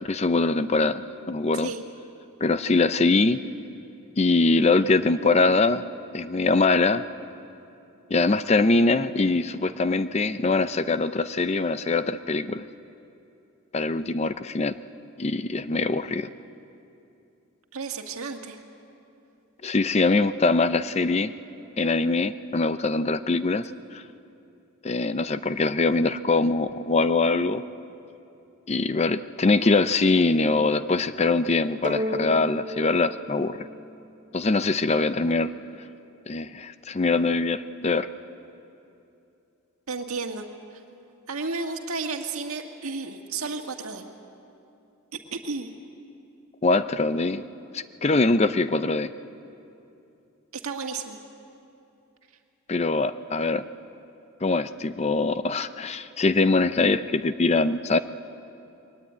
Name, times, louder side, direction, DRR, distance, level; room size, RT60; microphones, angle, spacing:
voice 1, 0.1-1.7 2.4-3.4 4.2-5.8 6.1-7.0 8.1-12.6 13.7-14.7 15.2-16.3 19.6-21.3 21.8-24.0 24.8-27.6 28.7-33.7 34.3-35.5 36.3-38.1 46.6-47.4 47.7-49.1 52.7-53.6 54.4-58.0, left 3 dB, 30° left, 13 dB, 0.5 m, -23 dB
voice 2, 17.7-18.6 39.9-40.5 41.3-44.1 45.3-45.7 50.6-51.2, right 4 dB, 75° right, 4 dB, 1.8 m, -32 dB
sound 1, 31.8-34.4, equal, 35° right, 0.8 m, -33 dB
22.0 x 18.5 x 9.4 m, 2.7 s
head